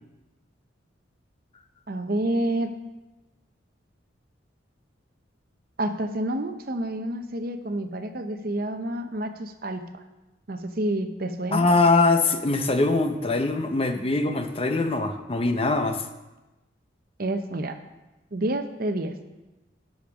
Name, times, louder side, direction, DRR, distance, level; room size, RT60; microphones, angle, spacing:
voice 1, 1.9-2.7 5.8-10.0 10.5-11.7 17.2-17.8 18.3-19.3, right 1 dB, 50° right, 8 dB, 0.8 m, -29 dB
voice 2, 11.5-16.1, left 3 dB, 30° left, 6 dB, 0.7 m, -22 dB
12.0 x 5.3 x 6.0 m, 1.0 s
head